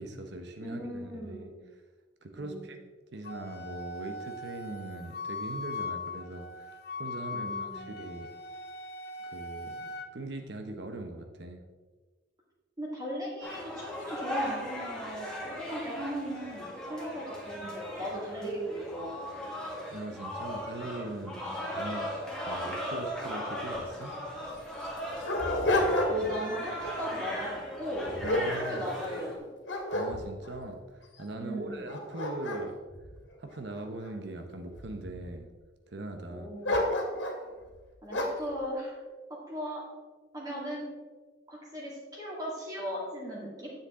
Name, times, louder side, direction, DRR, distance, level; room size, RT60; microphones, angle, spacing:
voice 1, 0.0-1.5 2.2-2.8 3.1-8.3 9.3-11.6 19.9-21.4 21.7-22.1 22.5-24.2 28.2-28.9 29.9-32.8 33.4-35.5 35.9-36.5, right 2 dB, 60° right, 5 dB, 0.8 m, -41 dB
voice 2, 0.6-1.6 2.4-2.7 7.3-7.9 12.8-19.4 21.2-21.8 26.1-27.5 27.8-29.3 31.4-31.9 36.3-36.9 38.0-39.0 39.3-39.8 40.3-40.9 41.5-43.7, equal, 20° right, -5 dB, 2.0 m, -38 dB
Wind instrument woodwind instrument, 3.2-10.1, left 3 dB, 50° left, 0.8 m, -40 dB
sound 1, 13.4-29.4, equal, 5° left, 1.6 m, -38 dB
Dog, 24.1-24.2 24.8-26.4 26.8-27.1 27.7-29.2 29.6-30.6 31.2-31.3 31.7-34.1 34.7-35.3 36.6-37.4 38.1-38.5, left 1 dB, 70° left, 1.9 m, -31 dB
9.9 x 7.3 x 3.7 m, 1.3 s
head